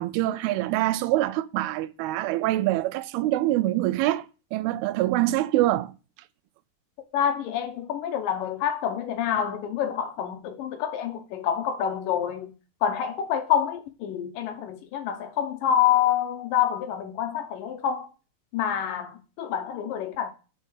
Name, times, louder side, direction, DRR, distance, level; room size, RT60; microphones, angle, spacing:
voice 1, 0.0-4.3 4.5-5.9, right 15 dB, 90° right, 2.5 m, -25 dB
voice 2, 7.1-12.5 12.8-18.1 18.5-20.3, left 9 dB, 75° left, 2.2 m, -27 dB
5.5 x 5.0 x 6.3 m
omnidirectional pair, 4.4 m